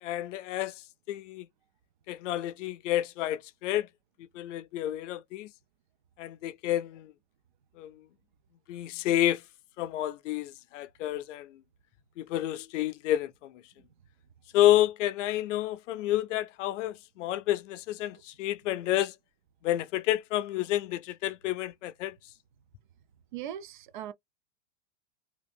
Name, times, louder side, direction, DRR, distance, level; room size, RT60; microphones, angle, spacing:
voice 1, 0.0-1.5 2.1-3.9 4.2-5.5 6.2-7.1 7.8-8.0 8.7-9.4 9.8-11.6 12.2-13.6 14.5-19.1 19.6-22.2, left 13 dB, 70° left, 0.5 m, -29 dB
voice 2, 23.3-24.1, right 10 dB, 40° right, 0.4 m, -39 dB
2.8 x 2.4 x 3.4 m
supercardioid pair, 170°, 39 cm